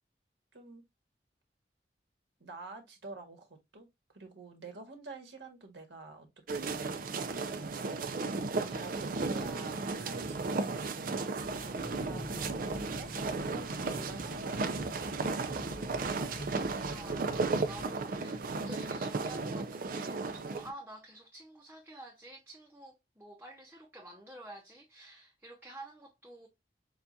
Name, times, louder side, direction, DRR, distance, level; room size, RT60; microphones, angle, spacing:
voice 1, 0.5-0.8 2.4-3.5 3.7-3.9 4.1-7.4 8.3-13.1 13.4-15.8, right 3 dB, 90° right, 1.6 m, -48 dB
sound 1, 6.5-20.7, right 3 dB, 50° right, 0.5 m, -35 dB
sound 2, 11.4-17.9, left 1 dB, 35° left, 0.5 m, -46 dB
voice 2, 16.9-26.5, right 1 dB, 10° right, 0.7 m, -50 dB
6.8 x 2.4 x 2.7 m
head